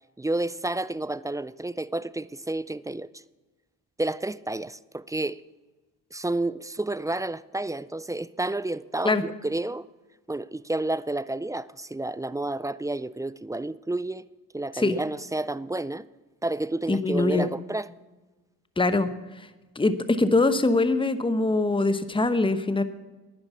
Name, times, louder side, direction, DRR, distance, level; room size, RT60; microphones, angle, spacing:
voice 1, 0.2-3.1 4.0-5.4 6.1-9.9 10.3-14.3 14.5-16.0 16.4-17.9, right 2 dB, 10° right, 0.3 m, -30 dB
voice 2, 16.9-17.5 18.8-19.1 19.4-19.5 19.7-22.8, left 2 dB, 10° left, 1.0 m, -23 dB
10.5 x 9.6 x 7.0 m
hypercardioid pair, 45°, 43 cm